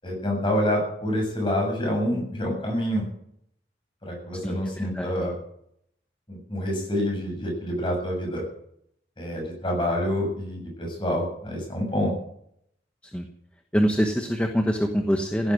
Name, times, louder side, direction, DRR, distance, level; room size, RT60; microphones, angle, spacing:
voice 1, 0.0-3.0 4.0-5.3 6.3-8.4 9.2-12.1, equal, 25° left, 0 dB, 7.5 m, -27 dB
voice 2, 4.4-5.1 13.0-13.2 13.7-15.5, equal, 5° left, 4 dB, 1.2 m, -25 dB
16.5 x 10.5 x 7.8 m, 0.71 s
head